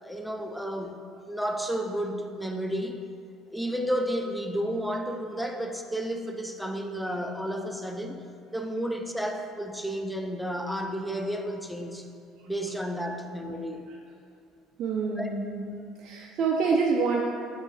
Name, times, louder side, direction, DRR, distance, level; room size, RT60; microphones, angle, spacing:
voice 1, 0.0-3.0 3.5-8.2 8.5-12.1 12.5-13.9 15.2-15.3, equal, ahead, 4 dB, 0.6 m, -32 dB
voice 2, 14.8-17.2, right 5 dB, 50° right, 0 dB, 0.4 m, -27 dB
6.1 x 6.1 x 2.7 m, 2.4 s
figure-of-eight pair, 60°, 0 cm